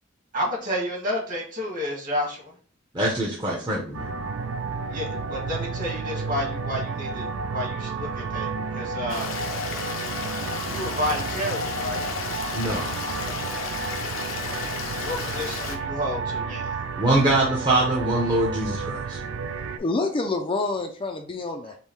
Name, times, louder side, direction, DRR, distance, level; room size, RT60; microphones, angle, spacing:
voice 1, 0.3-2.5 4.9-9.3 10.6-12.0 15.0-16.7, left 1 dB, 45° right, 1.8 m, -30 dB
voice 2, 2.9-4.0 12.5-12.9 17.0-19.2, right 1 dB, 20° right, 0.7 m, -23 dB
sound 1, 3.9-19.8, right 4 dB, 70° right, 0.4 m, -31 dB
Stream, 9.1-15.8, left 5 dB, 80° left, 0.6 m, -33 dB
voice 3, 19.7-21.8, left 3 dB, 25° left, 0.4 m, -27 dB
5.3 x 2.1 x 3.0 m
head